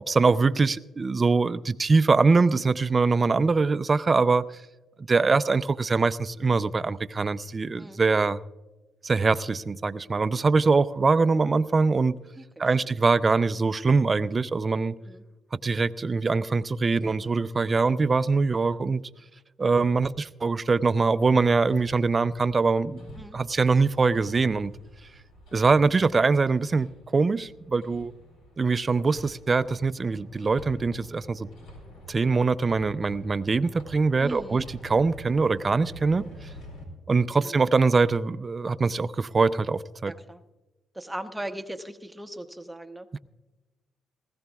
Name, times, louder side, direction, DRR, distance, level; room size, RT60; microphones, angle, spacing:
voice 1, 0.1-4.5 5.0-8.4 9.0-12.2 12.6-15.0 15.6-19.0 19.6-23.0 23.3-24.7 25.5-28.1 28.6-31.5 32.1-36.2 37.1-40.1 43.1-43.2, right 4 dB, 30° right, 0.5 m, -23 dB
Hammer, 21.2-36.8, equal, 85° left, 4.3 m, -47 dB
voice 2, 34.2-34.7 37.4-37.6 40.1-40.4 40.9-43.1, right 1 dB, 10° right, 0.9 m, -38 dB
19.5 x 15.5 x 2.3 m
cardioid pair, 90°, 0 cm